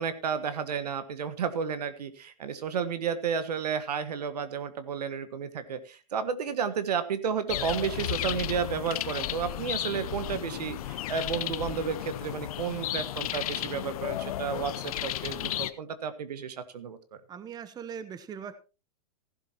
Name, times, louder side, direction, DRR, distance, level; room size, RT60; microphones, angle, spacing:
voice 1, 0.0-17.0, right 6 dB, 85° right, 12 dB, 1.6 m, -32 dB
sound 1, 7.5-15.7, left 13 dB, 65° left, 0.9 m, -34 dB
voice 2, 17.3-18.6, right 7 dB, 20° right, 13 dB, 0.9 m, -40 dB
15.0 x 11.5 x 3.0 m, 0.31 s
hypercardioid pair, 125°, 20 cm